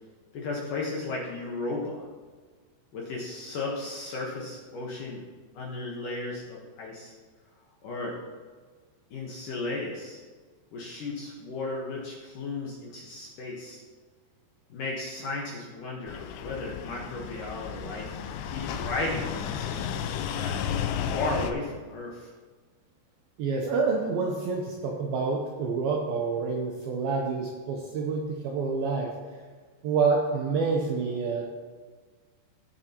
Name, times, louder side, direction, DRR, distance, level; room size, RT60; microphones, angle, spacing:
voice 1, 0.3-2.0 2.9-5.2 5.5-7.1 7.8-8.2 9.1-10.2 10.7-13.8 14.7-22.3, left 2 dB, 65° left, -3 dB, 2.2 m, -35 dB
sound 1, 16.1-21.5, left 8 dB, 85° left, 2.8 m, -33 dB
voice 2, 23.4-29.1 29.8-31.5, right 4 dB, 80° right, 0 dB, 2.2 m, -28 dB
18.0 x 6.9 x 2.9 m, 1.5 s
omnidirectional pair, 5.2 m